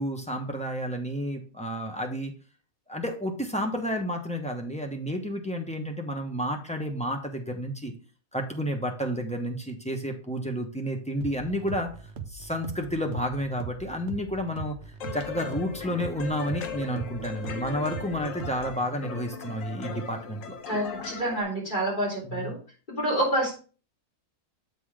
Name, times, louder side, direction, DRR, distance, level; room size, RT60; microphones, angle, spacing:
voice 1, 0.0-2.3 2.9-7.9 8.3-11.9 12.3-14.7 15.1-20.6 22.2-22.5, equal, 5° left, 2 dB, 0.9 m, -31 dB
sound 1, 11.2-18.9, right 6 dB, 60° right, 1.0 m, -40 dB
sound 2, 15.0-21.4, left 6 dB, 70° left, 1.3 m, -38 dB
voice 2, 20.7-22.6 22.9-23.5, right 1 dB, 35° left, -4 dB, 3.6 m, -28 dB
7.6 x 4.0 x 4.9 m, 0.38 s
omnidirectional pair, 1.5 m